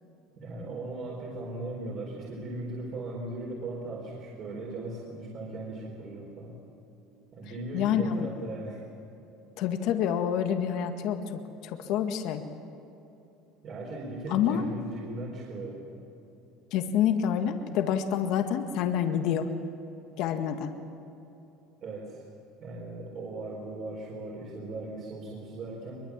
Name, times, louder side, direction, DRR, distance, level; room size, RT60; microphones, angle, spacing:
voice 1, 0.4-6.5 7.3-8.8 13.6-15.9 21.8-22.2 22.6-26.0, right 2 dB, 40° right, -2 dB, 4.6 m, -38 dB
voice 2, 7.7-8.3 9.6-12.4 14.3-14.6 16.7-19.5 20.2-20.7, left 9 dB, 60° left, 6 dB, 1.7 m, -27 dB
23.0 x 23.0 x 7.4 m, 2.9 s
cardioid pair, 140°, 0 cm